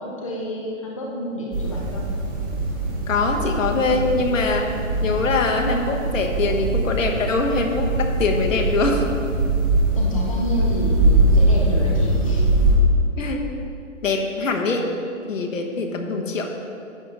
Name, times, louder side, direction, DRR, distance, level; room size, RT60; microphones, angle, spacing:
voice 1, 0.0-2.0 9.9-12.4, left 1 dB, 25° left, -2 dB, 0.6 m, -30 dB
sound 1, 1.5-12.7, right 2 dB, 15° right, 1.1 m, -22 dB
voice 2, 3.1-4.7 5.0-9.0 13.2-13.4 14.0-14.9 15.3-16.5, left 3 dB, 75° left, 3 dB, 1.3 m, -23 dB
10.5 x 3.7 x 6.6 m, 2.5 s
hypercardioid pair, 180°, 39 cm